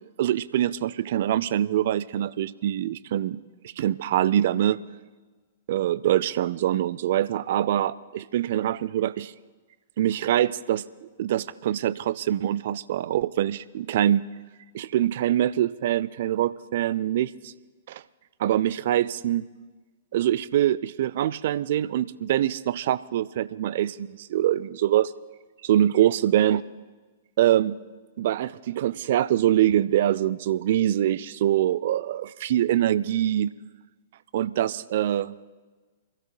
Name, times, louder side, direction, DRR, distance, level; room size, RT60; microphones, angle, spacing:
voice 1, 0.2-3.4 3.8-4.8 5.7-9.3 10.0-10.8 11.2-14.3 14.7-17.5 17.9-18.0 18.4-19.4 20.1-25.1 25.6-26.6 27.4-27.8 28.2-33.5 34.3-35.4, right 12 dB, 55° right, 19 dB, 0.4 m, -24 dB
26.0 x 15.5 x 2.2 m, 1.3 s
figure-of-eight pair, 105°, 0 cm